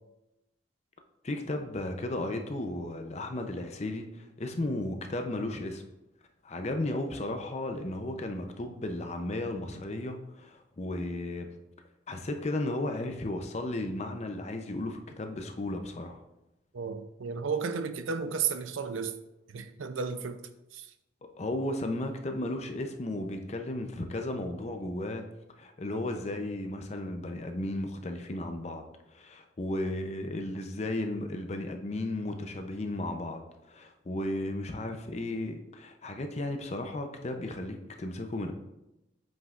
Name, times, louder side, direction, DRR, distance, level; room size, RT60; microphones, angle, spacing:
voice 1, 1.2-5.8 6.4-11.5 12.1-16.2 21.4-25.2 25.6-28.8 29.1-38.5, left 1 dB, 35° left, 0.6 m, -34 dB
voice 2, 16.7-19.1 19.5-20.4 20.7-20.9, right 5 dB, 80° right, 0.5 m, -33 dB
7.9 x 5.4 x 2.4 m
head